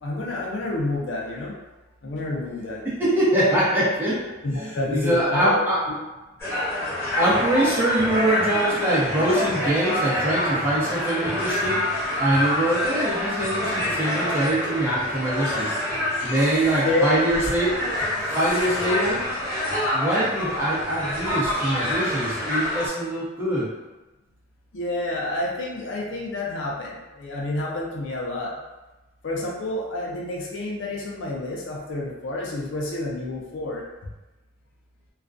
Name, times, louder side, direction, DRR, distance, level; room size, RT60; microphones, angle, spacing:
voice 1, 0.0-1.5 2.0-2.8 4.4-5.9 15.6-15.7 16.2-17.5 18.4-18.9 24.7-28.5 29.2-33.8, left 2 dB, 65° left, -2 dB, 0.5 m, -29 dB
voice 2, 2.8-4.2 4.6-5.8 7.2-11.8 12.2-15.8 16.2-17.9 18.3-19.2 19.9-23.7, right 1 dB, 10° right, -9 dB, 0.7 m, -23 dB
sound 1, 6.4-22.9, left 1 dB, 10° left, 1.0 m, -27 dB
2.4 x 2.1 x 2.4 m, 1.1 s
head